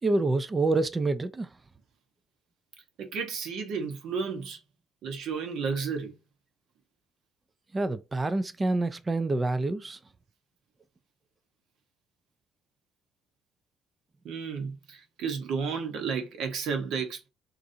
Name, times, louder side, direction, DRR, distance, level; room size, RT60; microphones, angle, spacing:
voice 1, 0.0-1.5 7.7-10.0, right 2 dB, 20° right, 0.3 m, -27 dB
voice 2, 3.0-4.6 5.0-6.1 14.2-17.2, right 5 dB, 70° right, 1.0 m, -32 dB
3.8 x 2.4 x 2.7 m
cardioid pair, 130°, 0 cm